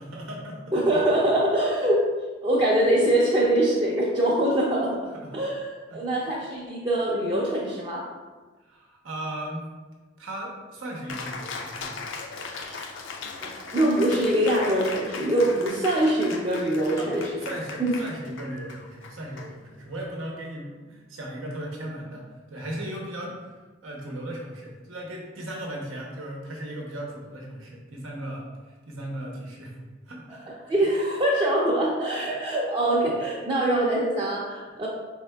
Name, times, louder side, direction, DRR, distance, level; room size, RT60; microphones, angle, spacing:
voice 1, 0.0-1.0 5.1-5.4 5.9-6.0 8.6-9.7 10.2-12.1 17.0-17.1 17.4-23.5 23.8-29.8 30.1-30.7, right 1 dB, 90° right, -1 dB, 0.8 m, -37 dB
voice 2, 0.7-2.0 2.4-5.1 5.3-8.1 12.5-12.9 13.4-17.3 30.7-34.9, right 1 dB, 25° right, -5 dB, 0.5 m, -23 dB
Cheering, 11.1-20.0, left 4 dB, 65° left, 0.4 m, -38 dB
4.7 x 3.6 x 2.2 m, 1.3 s
head